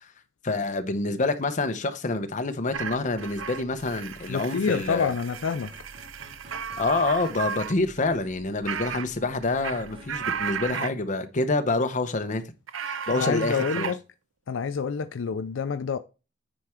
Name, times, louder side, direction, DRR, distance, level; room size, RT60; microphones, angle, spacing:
voice 1, 0.4-5.1 6.8-12.4 12.9-13.9, left 2 dB, 40° left, 0.9 m, -27 dB
sound 1, 2.7-10.7, equal, 30° right, 1.7 m, -50 dB
sound 2, 2.7-7.7 8.0-8.1 8.6-9.1 9.4-10.9 12.7-13.9, right 6 dB, 90° right, 0.6 m, -34 dB
voice 2, 4.3-5.7 13.1-14.0 14.5-16.0, left 5 dB, 75° left, 0.4 m, -27 dB
9.3 x 4.4 x 3.6 m
head